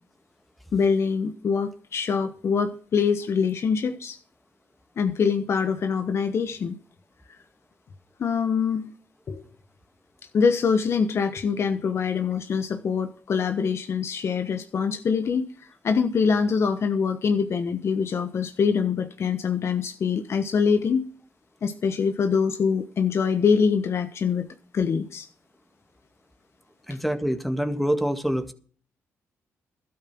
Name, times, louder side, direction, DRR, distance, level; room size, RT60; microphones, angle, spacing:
voice 1, 0.7-4.2 5.0-6.8 8.2-8.9 9.3-9.4 10.3-21.0 21.6-24.5 24.7-25.3, left 6 dB, 55° left, 9 dB, 1.2 m, -24 dB
voice 2, 26.9-28.5, equal, ahead, 8 dB, 1.8 m, -26 dB
12.5 x 8.8 x 6.0 m, 0.43 s
cardioid pair, 70°, 5 cm